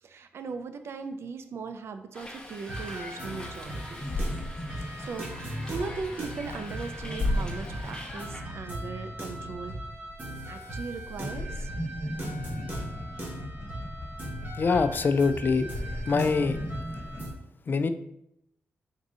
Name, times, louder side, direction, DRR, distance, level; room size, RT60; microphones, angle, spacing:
voice 1, 0.0-4.0 5.0-9.7 10.5-11.7, right 4 dB, 65° right, 8 dB, 0.4 m, -38 dB
Hiss, 2.1-8.4, left 1 dB, 15° left, 0.9 m, -44 dB
sound 1, 2.7-17.3, right 1 dB, 40° right, 1.5 m, -39 dB
sound 2, 3.6-10.6 10.9-17.3, left 1 dB, 65° left, 1.4 m, -36 dB
voice 2, 14.6-15.7 16.1-16.6 17.7-17.9, left 4 dB, 45° left, 10 dB, 0.3 m, -24 dB
3.8 x 2.7 x 4.8 m, 0.78 s
cardioid pair, 75°, 5 cm